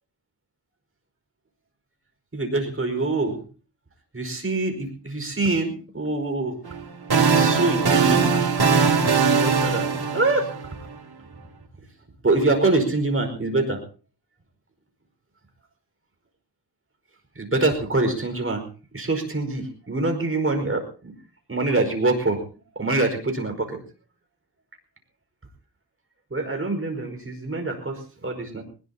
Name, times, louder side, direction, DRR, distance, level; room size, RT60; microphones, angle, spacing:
voice 1, 2.3-3.4 4.1-6.6 7.1-8.3 9.4-10.5 12.2-13.8 17.3-18.6 18.9-21.1 21.5-22.4 22.7-23.8 26.3-28.6, right 2 dB, 30° right, 4 dB, 5.1 m, -25 dB
sound 1, 6.7-10.9, right 5 dB, 60° right, 3.1 m, -20 dB
22.5 x 20.5 x 2.9 m, 0.37 s
wide cardioid pair, 120°, 43 cm